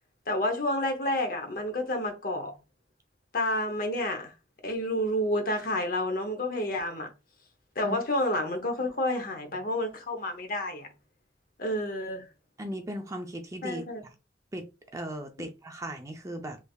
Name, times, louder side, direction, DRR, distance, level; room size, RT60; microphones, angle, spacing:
voice 1, 0.3-2.5 3.3-4.3 4.6-7.1 7.8-10.9 11.6-12.3 13.6-14.0 15.4-15.5, left 1 dB, 50° left, 0.8 m, -29 dB
voice 2, 12.6-13.8 14.5-14.6 14.9-16.6, right 1 dB, 15° right, 0.4 m, -37 dB
3.3 x 3.3 x 2.3 m
head